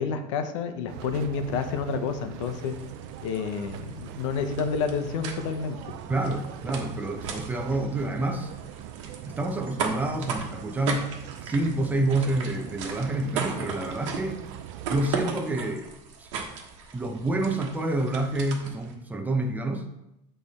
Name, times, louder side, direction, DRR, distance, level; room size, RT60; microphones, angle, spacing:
voice 1, 0.0-2.8 3.2-6.0, left 5 dB, 85° left, 8 dB, 0.8 m, -29 dB
sound 1, 0.9-15.3, right 11 dB, 65° right, 0.4 m, -42 dB
sound 2, 2.4-18.9, right 5 dB, 85° right, 1.2 m, -37 dB
voice 2, 6.1-8.5 9.3-11.1 11.4-14.4 14.9-15.9 16.2-16.3 16.9-19.9, right 2 dB, 10° right, 4 dB, 0.6 m, -28 dB
8.5 x 3.4 x 4.1 m, 0.84 s
supercardioid pair, 150°, 15 cm